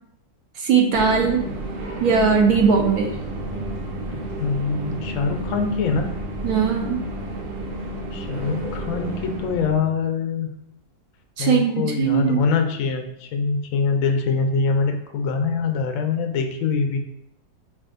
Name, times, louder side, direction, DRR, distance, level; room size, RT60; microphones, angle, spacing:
voice 1, 0.6-1.5 2.0-3.1 6.4-7.0 11.4-12.4, right 6 dB, 70° right, 1 dB, 1.0 m, -19 dB
sound 1, 0.9-9.8, right 1 dB, 85° right, 1.4 m, -31 dB
voice 2, 4.1-6.1 8.1-10.5 11.4-17.0, left 4 dB, 70° left, 5 dB, 0.8 m, -24 dB
5.9 x 2.4 x 2.5 m, 0.78 s
omnidirectional pair, 1.9 m